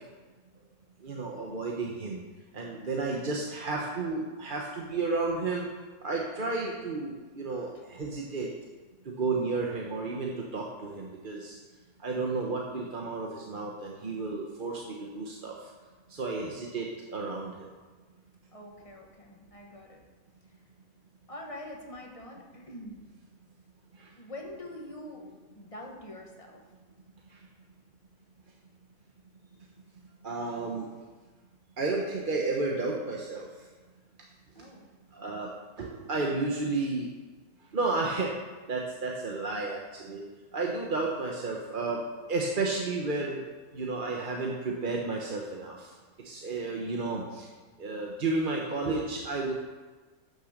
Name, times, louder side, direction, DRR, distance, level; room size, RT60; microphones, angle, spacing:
voice 1, 1.0-2.2 2.5-5.7 6.0-8.5 9.0-11.6 12.0-15.7 16.1-17.7 24.0-24.1 30.2-30.8 31.8-33.5 35.1-35.5 35.8-37.1 37.7-38.3 38.7-40.2 40.5-42.0 42.3-43.4 43.7-45.9 46.2-47.5 47.8-49.5, right 3 dB, 40° right, -1 dB, 1.1 m, -32 dB
voice 2, 18.5-20.7 21.3-23.0 24.0-26.6 34.5-34.9, left 1 dB, 25° left, 0 dB, 1.7 m, -45 dB
11.0 x 6.8 x 6.5 m, 1.3 s
omnidirectional pair, 1.6 m